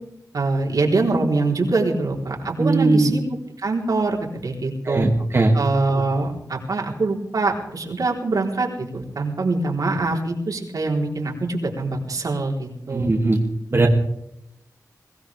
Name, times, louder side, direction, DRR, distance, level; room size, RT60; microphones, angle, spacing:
voice 1, 0.3-3.2 3.6-5.1 5.5-13.2, right 3 dB, 65° right, 0 dB, 4.0 m, -24 dB
voice 2, 2.6-3.1 4.9-5.6 12.9-13.4 13.7-13.9, right 2 dB, 40° right, -1 dB, 2.4 m, -18 dB
23.0 x 17.0 x 3.6 m, 0.81 s
wide cardioid pair, 85°, 7 cm